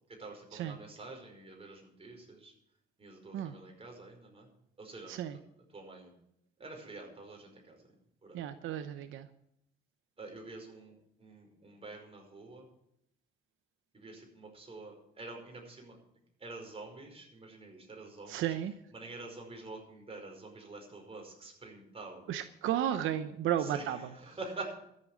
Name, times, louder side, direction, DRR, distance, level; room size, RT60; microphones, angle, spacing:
voice 1, 0.1-2.5 3.0-4.5 4.8-5.1 5.7-6.1 6.6-7.9 8.2-8.4 10.2-12.7 13.9-16.0 16.4-18.5 18.9-22.3 23.6-24.8, right 3 dB, 30° right, 1 dB, 5.2 m, -47 dB
voice 2, 8.3-9.3 18.3-18.7 22.3-24.0, right 11 dB, 85° right, 10 dB, 0.8 m, -33 dB
13.5 x 7.7 x 9.1 m, 0.76 s
cardioid pair, 90°, 20 cm